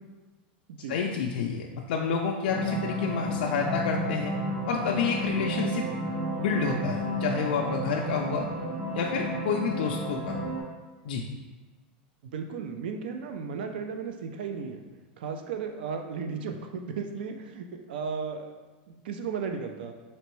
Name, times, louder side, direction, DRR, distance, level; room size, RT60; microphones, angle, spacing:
voice 1, 0.9-4.3 4.7-5.8 6.4-8.5 8.9-10.4 11.0-11.2, left 5 dB, 85° left, 0 dB, 0.4 m, -29 dB
sound 1, 2.5-10.6, equal, 40° right, 0.8 m, -32 dB
voice 2, 12.2-14.9 15.2-18.5 18.9-19.9, right 5 dB, 85° right, 5 dB, 0.4 m, -35 dB
4.4 x 3.0 x 3.0 m, 1.2 s
supercardioid pair, 160°, 5 cm